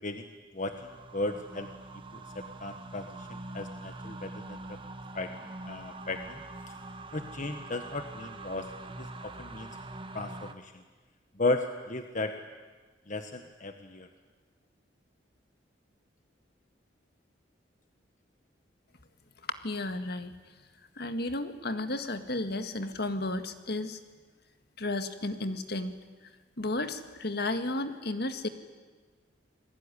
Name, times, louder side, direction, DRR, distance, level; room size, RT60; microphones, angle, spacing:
voice 1, 0.0-1.7 2.1-4.8 5.1-6.4 6.7-6.8 7.1-8.7 9.0-9.7 10.1-10.8 11.3-12.3 13.1-14.1, left 2 dB, 45° left, 6 dB, 1.4 m, -35 dB
sound 1, 0.7-10.5, right 2 dB, 30° right, 1.4 m, -44 dB
voice 2, 19.6-20.4 21.0-24.0 24.8-26.0 26.6-28.5, left 2 dB, 60° left, 8 dB, 1.9 m, -33 dB
28.5 x 20.0 x 10.0 m, 1.4 s
head